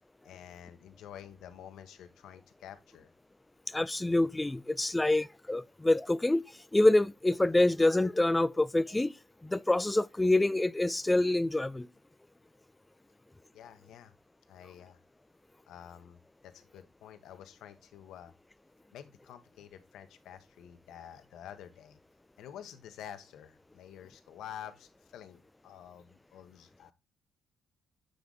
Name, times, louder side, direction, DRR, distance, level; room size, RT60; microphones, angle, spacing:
voice 1, 0.2-3.1 13.5-14.1 14.5-15.0 15.7-18.3 18.9-22.0 22.4-26.9, left 10 dB, 80° left, 0.8 m, -49 dB
voice 2, 3.7-6.4 6.7-9.1 9.4-11.9, left 2 dB, 15° left, 0.3 m, -26 dB
7.8 x 3.5 x 3.7 m
cardioid pair, 90°, 0 cm